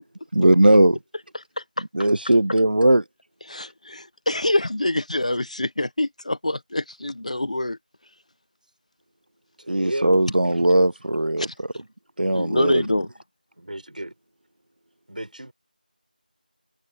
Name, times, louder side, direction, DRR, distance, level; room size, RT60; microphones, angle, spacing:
voice 1, 0.3-1.0 1.9-3.0 9.7-11.7 12.2-12.9, right 1 dB, 80° right, 0.7 m, -18 dB
voice 2, 3.5-7.8 11.4-11.5 12.3-13.1, left 1 dB, 45° left, 1.2 m, -26 dB
voice 3, 9.6-10.1 13.6-14.1 15.1-15.5, right 1 dB, 60° right, 4.5 m, -32 dB
figure-of-eight pair, 175°, 5 cm